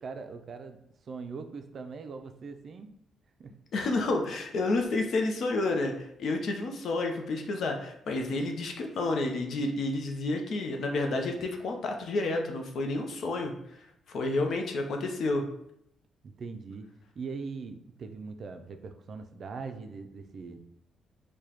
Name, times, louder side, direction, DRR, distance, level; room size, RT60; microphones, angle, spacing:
voice 1, 0.0-2.9 3.4-3.6 16.2-16.9 17.2-20.6, right 4 dB, 50° right, 7 dB, 0.4 m, -41 dB
voice 2, 3.7-15.4, left 2 dB, 65° left, 3 dB, 0.6 m, -30 dB
4.7 x 2.2 x 2.9 m, 0.75 s
cardioid pair, 90°, 0 cm